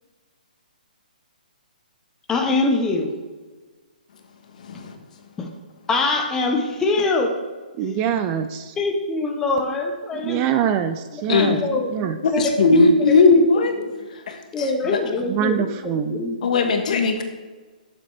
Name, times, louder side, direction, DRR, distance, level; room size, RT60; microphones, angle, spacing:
voice 1, 2.3-3.1 5.4-5.5 5.9-7.3 7.8-8.0 8.8-10.5 11.1-13.9 14.5-16.7, left 3 dB, 10° left, 2 dB, 0.7 m, -24 dB
voice 2, 7.8-8.8 10.2-11.6 11.9-12.2 15.3-16.2, right 9 dB, 20° right, 9 dB, 0.3 m, -24 dB
voice 3, 12.2-13.8 14.3-14.4 14.9-15.0 16.4-17.2, left 3 dB, 55° left, 5 dB, 1.2 m, -17 dB
8.0 x 7.0 x 3.3 m, 1.4 s
hypercardioid pair, 155°, 5 cm